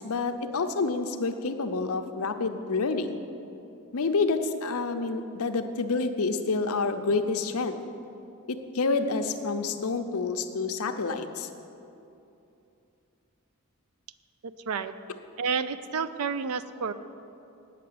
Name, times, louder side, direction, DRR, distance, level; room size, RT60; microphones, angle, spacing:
voice 1, 0.0-3.2 3.9-7.8 8.5-11.5, left 4 dB, 80° left, 7 dB, 0.7 m, -28 dB
voice 2, 15.4-16.9, right 5 dB, 85° right, 13 dB, 0.5 m, -30 dB
8.8 x 6.7 x 8.5 m, 2.8 s
head